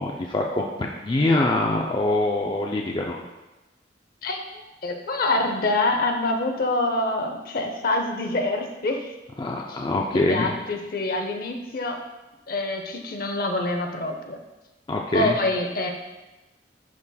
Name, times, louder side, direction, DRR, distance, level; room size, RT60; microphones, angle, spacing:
voice 1, 0.0-3.2 9.4-10.5 14.9-15.4, left 2 dB, 25° left, 0 dB, 0.4 m, -24 dB
voice 2, 4.2-9.1 9.7-9.8 10.1-12.0 12.5-14.4 15.1-15.9, left 2 dB, 55° left, 4 dB, 0.7 m, -26 dB
10.5 x 4.1 x 2.3 m, 1.1 s
head